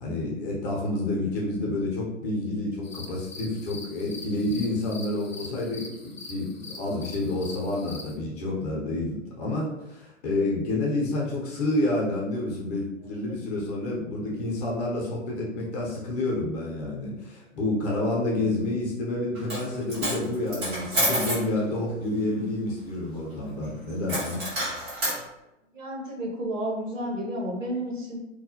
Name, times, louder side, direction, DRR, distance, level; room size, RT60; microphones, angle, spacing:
voice 1, 0.0-24.4, left 2 dB, 30° left, -3 dB, 0.7 m, -29 dB
sound 1, 2.8-8.2, left 3 dB, 90° left, 0.6 m, -43 dB
Coin (dropping), 19.3-19.6 19.9-21.4 24.1-25.2, right 1 dB, 10° right, 0.3 m, -28 dB
voice 2, 25.7-28.2, right 1 dB, 80° right, -2 dB, 1.0 m, -31 dB
2.3 x 2.0 x 2.8 m, 0.95 s
figure-of-eight pair, 115°, 38 cm